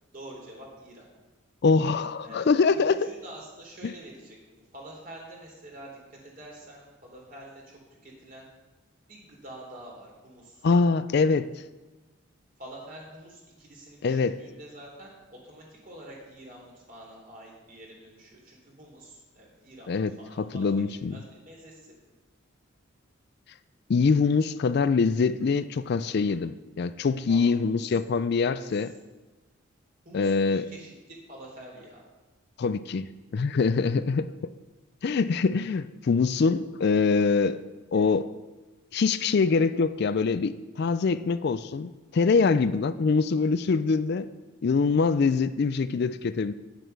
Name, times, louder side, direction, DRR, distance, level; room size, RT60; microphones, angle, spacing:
voice 1, 0.1-1.1 2.2-2.5 3.0-4.4 4.7-8.5 9.1-10.7 12.6-20.6 21.1-21.9 27.3-27.8 28.5-28.9 30.0-32.0, right 1 dB, 45° right, -2 dB, 3.5 m, -47 dB
voice 2, 1.6-3.1 3.8-3.9 10.6-11.5 14.0-14.4 19.9-21.2 23.9-28.9 30.1-30.6 32.6-34.5 35.0-37.6 37.9-38.3 38.9-44.3 44.6-46.5, left 4 dB, 55° left, 13 dB, 0.4 m, -24 dB
10.0 x 7.6 x 6.6 m, 1.2 s
head